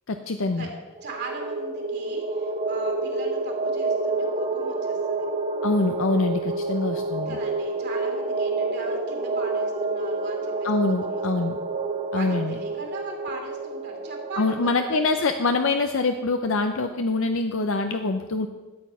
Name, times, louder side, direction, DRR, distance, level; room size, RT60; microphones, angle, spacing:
voice 1, 0.1-0.7 5.6-7.4 10.6-11.6 12.1-12.6 14.4-18.5, left 3 dB, 60° left, 7 dB, 0.6 m, -24 dB
sound 1, 1.0-15.3, right 3 dB, 30° right, 0.8 m, -29 dB
voice 2, 1.0-5.3 7.3-11.2 12.1-14.8, right 2 dB, 50° right, 1 dB, 2.6 m, -39 dB
13.0 x 8.4 x 5.6 m, 1.2 s
head